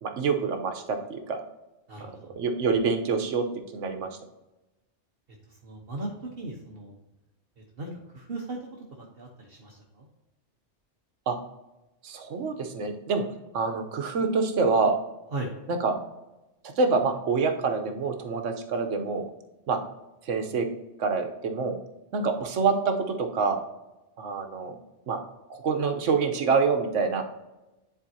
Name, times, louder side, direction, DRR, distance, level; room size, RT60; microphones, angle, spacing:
voice 1, 0.0-1.4 2.4-3.5 3.7-4.1 11.3-11.4 12.0-13.2 13.5-15.0 15.7-15.9 16.8-19.2 19.7-19.8 20.3-20.7 21.0-21.8 22.1-23.6 24.2-24.8 25.1-25.2 25.5-27.2, right 4 dB, 90° right, 5 dB, 1.2 m, -26 dB
voice 2, 1.9-2.3 5.6-6.1 6.4-6.9 7.8-7.9 8.1-8.6 9.0-10.1 15.3-15.5, right 2 dB, 55° right, -1 dB, 1.2 m, -37 dB
10.0 x 4.5 x 2.7 m, 1.0 s
omnidirectional pair, 1.2 m